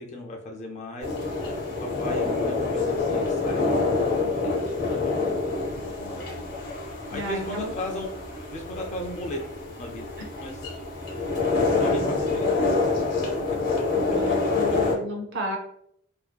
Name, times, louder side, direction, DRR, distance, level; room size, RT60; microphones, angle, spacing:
voice 1, 0.0-1.5 1.8-3.7 4.2-5.4 6.0-6.5 7.1-8.1 8.5-9.4 9.8-10.1 10.4-10.7 11.6-12.8, left 1 dB, 35° left, 2 dB, 0.4 m, -36 dB
sound 1, 1.0-15.0, left 3 dB, 50° left, 0.8 m, -26 dB
voice 2, 7.1-7.7 13.9-15.6, left 1 dB, 55° right, 2 dB, 0.5 m, -33 dB
2.5 x 2.2 x 2.2 m, 0.69 s
head